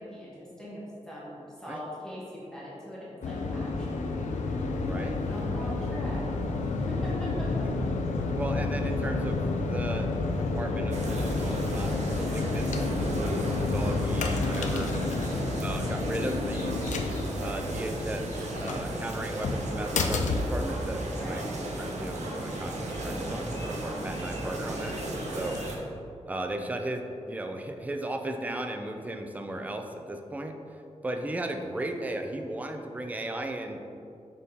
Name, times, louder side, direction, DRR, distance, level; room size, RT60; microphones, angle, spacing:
voice 1, 0.0-4.3 4.8-6.2 6.6-7.7 15.2-15.8 21.1-21.5, equal, 5° left, -8 dB, 1.3 m, -41 dB
sound 1, 3.2-21.3, left 3 dB, 85° left, 0.4 m, -30 dB
voice 2, 4.8-5.2 8.3-10.1 10.4-11.1 11.4-15.0 15.6-16.7 17.4-18.3 18.6-21.4 21.8-25.0 25.3-25.6 26.3-30.6 31.0-33.8, right 1 dB, 10° right, 4 dB, 0.4 m, -35 dB
sound 2, 8.0-25.7, left 1 dB, 25° left, 1.2 m, -50 dB
sound 3, 10.9-25.8, right 1 dB, 70° right, 0.8 m, -35 dB
6.4 x 3.6 x 4.1 m, 2.5 s
wide cardioid pair, 155°, 12 cm